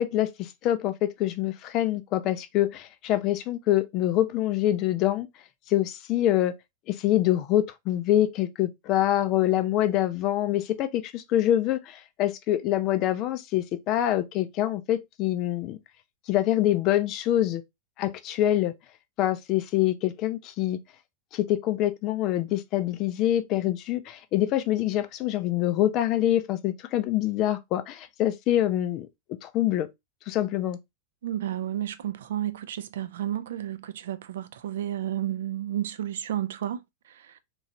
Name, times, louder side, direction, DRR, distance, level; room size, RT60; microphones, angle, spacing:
voice 1, 0.0-5.3 5.7-6.5 6.9-15.8 16.3-17.6 18.0-18.7 19.2-20.8 21.3-29.1 29.4-29.9 30.3-30.8, left 13 dB, 40° left, 0.4 m, -25 dB
voice 2, 31.2-37.4, right 11 dB, 60° right, 0.3 m, -32 dB
3.0 x 2.4 x 2.8 m
figure-of-eight pair, 90°, 0 cm